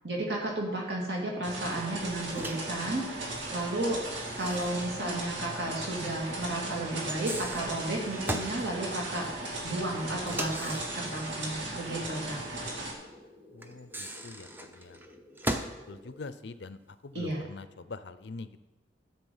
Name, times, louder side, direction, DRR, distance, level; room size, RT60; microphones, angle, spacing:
voice 1, 0.0-4.0 4.4-9.3 9.6-12.4 17.1-17.4, right 1 dB, 65° right, -2 dB, 2.9 m, -33 dB
sound 1, 1.4-12.9, right 2 dB, 80° right, 2.5 m, -37 dB
Microwave oven, 2.3-2.7 4.1-5.5 5.8-5.9 7.0-8.6 10.2-11.6 13.6-15.8, right 1 dB, 10° right, 0.6 m, -38 dB
sound 2, 8.7-16.2, left 1 dB, 30° right, 2.8 m, -54 dB
voice 2, 13.5-15.0 15.9-18.6, left 3 dB, 70° left, 13 dB, 0.6 m, -44 dB
12.5 x 7.6 x 5.6 m, 1.1 s
head